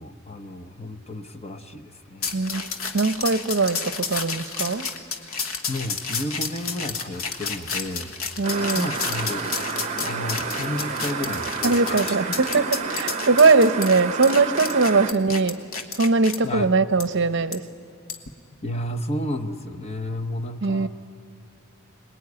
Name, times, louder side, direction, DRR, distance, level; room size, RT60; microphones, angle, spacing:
voice 1, 0.0-2.6 5.7-8.2 8.6-9.5 10.0-12.2 12.5-12.6 16.4-16.7 18.6-20.9, left 1 dB, 30° left, 7 dB, 1.0 m, -32 dB
sound 1, 2.2-16.4 17.0-17.1 17.5-17.6 18.1-18.3, left 5 dB, 85° left, 1.6 m, -31 dB
voice 2, 2.3-2.7 2.9-4.9 8.4-8.9 11.6-15.6 15.9-17.6 20.6-20.9, right 3 dB, 55° right, 12 dB, 0.7 m, -21 dB
sound 2, 8.4-15.1, right 5 dB, 35° right, 0.9 m, -30 dB
25.0 x 20.0 x 9.6 m, 2.3 s
head